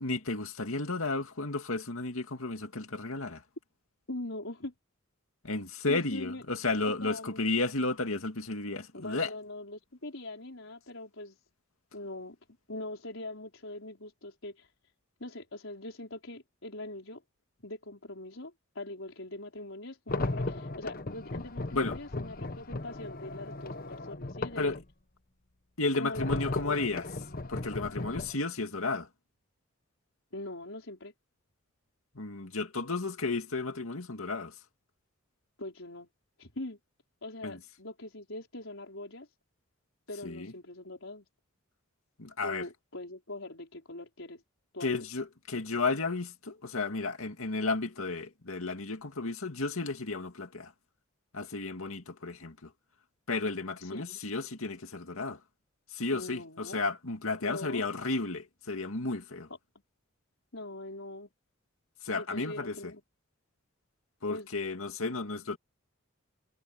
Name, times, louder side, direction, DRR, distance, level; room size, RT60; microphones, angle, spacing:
voice 1, 0.0-3.4 5.4-9.3 21.7-22.0 24.6-24.7 25.8-27.1 27.5-29.1 32.1-34.6 37.4-37.6 40.2-40.5 42.2-42.7 44.8-50.7 51.3-52.7 53.3-55.4 55.9-59.5 62.0-62.9 64.2-65.6, left 3 dB, 85° left, 2.2 m, -33 dB
voice 2, 4.1-4.7 5.9-6.4 6.8-7.4 8.9-11.4 11.9-12.4 12.7-14.7 15.2-17.2 17.6-24.8 25.9-26.8 30.3-31.1 35.6-36.1 36.4-36.8 37.2-39.3 40.1-41.3 42.4-44.4 44.7-45.1 53.8-54.2 56.1-56.8 57.4-57.8 60.5-61.3 62.1-63.0 64.3-64.5, left 2 dB, 70° left, 5.1 m, -42 dB
sound 1, 20.1-24.8 26.1-28.4, left 2 dB, 45° left, 1.1 m, -36 dB
head